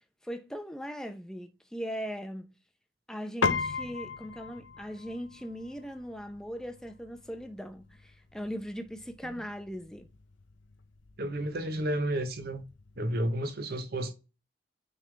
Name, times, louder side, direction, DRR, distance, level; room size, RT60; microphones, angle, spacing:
voice 1, 0.2-2.5 3.1-10.1, equal, 5° left, 0.7 m, -39 dB
Piano, 3.4-13.0, left 5 dB, 80° left, 0.6 m, -38 dB
voice 2, 11.2-12.6 13.0-14.1, right 1 dB, 55° right, 1.0 m, -32 dB
9.2 x 3.7 x 3.4 m
head